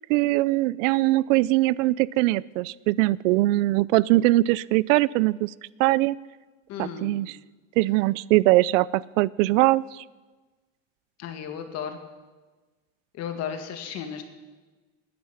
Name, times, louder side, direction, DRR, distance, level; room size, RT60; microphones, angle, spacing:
voice 1, 0.1-5.5 5.8-6.2 6.8-7.4 7.8-10.0, right 18 dB, 75° right, 22 dB, 0.5 m, -21 dB
voice 2, 6.7-7.1 11.2-12.0 13.1-14.2, left 8 dB, 40° left, 6 dB, 2.0 m, -34 dB
20.5 x 10.5 x 5.8 m, 1.3 s
supercardioid pair, 150°, 39 cm